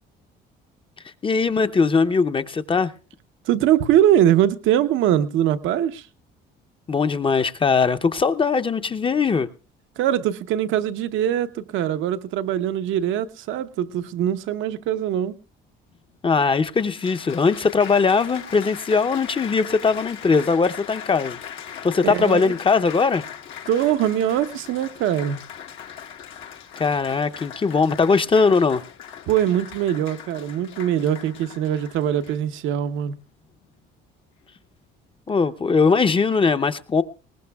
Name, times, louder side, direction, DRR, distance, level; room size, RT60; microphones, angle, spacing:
voice 1, 1.2-2.9 6.9-9.5 16.2-21.4 21.8-23.2 26.8-28.8 35.3-37.0, left 4 dB, 25° left, 0.7 m, -20 dB
voice 2, 3.4-6.1 10.0-15.3 22.0-22.5 23.7-25.4 29.3-33.2, right 11 dB, 75° right, 0.9 m, -22 dB
Applause, 15.9-16.0 16.7-32.6 33.3-33.7, left 9 dB, 75° left, 1.5 m, -39 dB
20.5 x 19.0 x 2.3 m
supercardioid pair, 85°, 20 cm